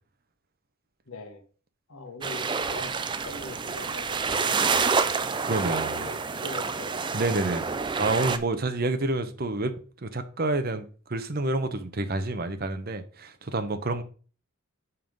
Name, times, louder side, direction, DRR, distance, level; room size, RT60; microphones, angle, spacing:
voice 1, 1.1-1.4 1.9-2.9 3.2-5.5 5.9-7.5, left 2 dB, 75° left, 1.4 m, -42 dB
sound 1, 2.2-8.4, right 5 dB, 20° right, 0.3 m, -28 dB
voice 2, 5.4-6.1 7.1-7.6 8.0-9.7 10.0-14.0, right 2 dB, 45° right, 0.8 m, -28 dB
5.6 x 5.5 x 5.2 m
head